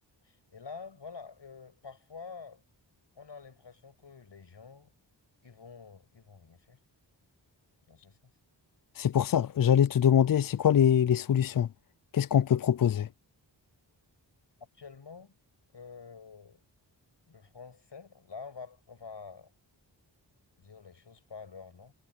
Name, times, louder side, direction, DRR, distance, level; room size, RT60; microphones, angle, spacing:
voice 1, 0.2-2.6 3.2-4.9 5.4-6.8 7.9-8.2 14.7-15.3 15.7-16.6 17.3-19.5 20.6-21.9, left 5 dB, 70° left, 7.0 m, -47 dB
voice 2, 9.0-11.7 12.1-13.1, left 9 dB, 50° left, 0.5 m, -23 dB
wide cardioid pair, 70°, 44 cm